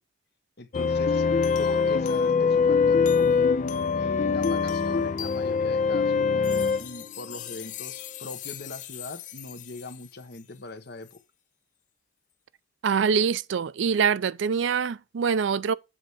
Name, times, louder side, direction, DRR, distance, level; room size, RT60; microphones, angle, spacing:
voice 1, 0.6-1.3 1.6-3.6 3.9-11.2, left 2 dB, 60° left, 1.0 m, -41 dB
sound 1, 0.7-9.6, left 5 dB, 40° left, 0.4 m, -24 dB
voice 2, 12.8-15.7, right 6 dB, 75° right, 0.4 m, -24 dB
7.6 x 3.3 x 6.3 m
head